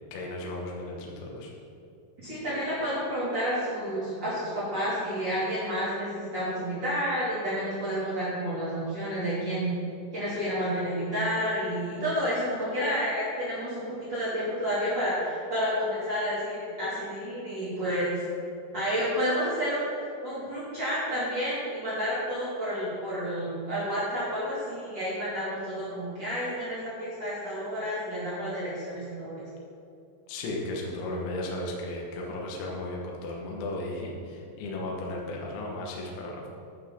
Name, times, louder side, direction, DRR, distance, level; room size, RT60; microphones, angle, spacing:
voice 1, 0.1-1.5 30.3-36.5, left 1 dB, 70° left, -2 dB, 2.6 m, -35 dB
voice 2, 2.2-9.7 10.1-18.2 18.7-29.4, equal, 75° right, -11 dB, 1.0 m, -30 dB
11.5 x 6.2 x 3.7 m, 2.7 s
omnidirectional pair, 5.9 m